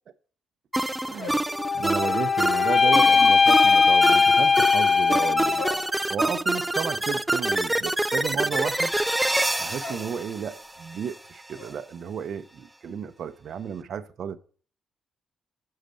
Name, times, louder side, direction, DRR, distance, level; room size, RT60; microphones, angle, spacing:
sound 1, 0.7-11.1, right 1 dB, 10° right, 0.3 m, -27 dB
sound 2, 1.0-3.1 3.4-10.1 10.4-10.9 11.2-11.7, left 2 dB, 70° left, 3.4 m, -42 dB
voice 1, 1.1-1.4 1.7-5.7 6.1-8.9 9.6-14.4, right 7 dB, 60° right, 0.6 m, -33 dB
sound 3, 1.5-5.9, left 5 dB, 45° left, 0.5 m, -19 dB
6.5 x 6.4 x 6.8 m
cardioid pair, 90°, 0 cm